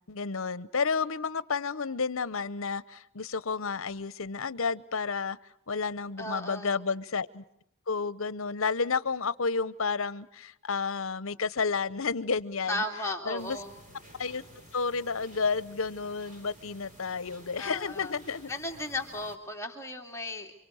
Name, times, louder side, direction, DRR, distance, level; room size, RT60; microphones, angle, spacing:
voice 1, 0.1-5.4 5.7-7.4 7.9-12.8 13.2-13.6 14.2-14.5 14.7-18.5, left 5 dB, 70° left, 18 dB, 0.9 m, -31 dB
voice 2, 6.2-6.7 12.7-13.7 17.6-18.1 18.5-20.5, left 1 dB, 15° left, 1 dB, 2.7 m, -35 dB
sound 1, 13.4-19.4, equal, 35° right, 5.4 m, -53 dB
29.0 x 25.5 x 6.5 m, 0.77 s
head